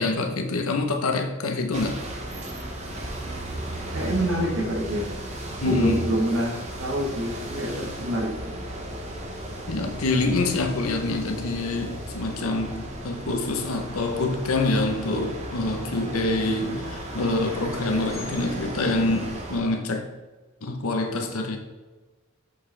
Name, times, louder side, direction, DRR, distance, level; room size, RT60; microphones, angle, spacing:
voice 1, 0.0-2.0 5.6-6.0 9.7-20.1 20.6-21.6, left 2 dB, 85° left, 4 dB, 0.9 m, -26 dB
sound 1, 1.7-19.6, right 1 dB, 30° right, 1.0 m, -35 dB
voice 2, 3.9-5.1 5.6-8.5 16.4-16.9, right 1 dB, 65° right, 1 dB, 1.3 m, -27 dB
6.5 x 5.5 x 3.3 m, 1.2 s
head